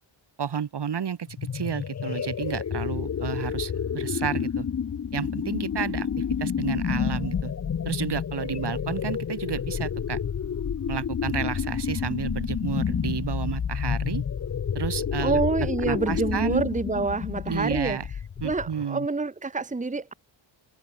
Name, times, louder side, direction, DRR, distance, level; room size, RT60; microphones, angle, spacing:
voice 1, 0.4-1.3 1.5-4.7 5.1-6.1 6.4-7.5 7.8-10.2 10.9-14.2 14.7-16.6 17.5-18.1 18.4-19.1, right 7 dB, 55° right, 2.0 m, -31 dB
sound 1, 1.3-18.8, left 7 dB, 35° left, 0.6 m, -29 dB
voice 2, 15.2-18.0 18.4-20.1, right 3 dB, 15° right, 1.2 m, -27 dB
open air
wide cardioid pair, 170°, 48 cm